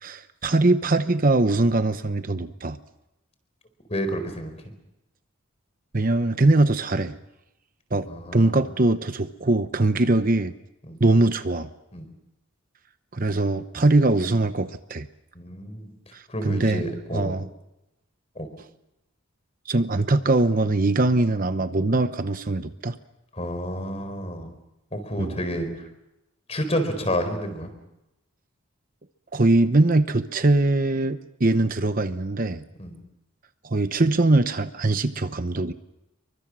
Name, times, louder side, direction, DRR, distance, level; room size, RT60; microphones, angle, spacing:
voice 1, 0.0-2.8 5.9-7.2 7.9-8.1 8.3-10.5 11.0-11.7 13.1-15.1 16.1-16.9 17.1-17.5 19.7-23.0 25.2-25.4 29.3-32.6 33.6-35.7, right 2 dB, 40° right, 10 dB, 0.9 m, -22 dB
voice 2, 3.9-4.5 8.1-8.6 9.9-10.0 10.8-11.0 11.9-12.1 15.3-15.9 16.3-17.3 18.4-18.5 23.3-24.5 24.9-25.7 26.5-27.7 32.8-33.0, equal, 30° left, 8 dB, 4.4 m, -29 dB
29.0 x 24.0 x 6.2 m, 0.90 s
head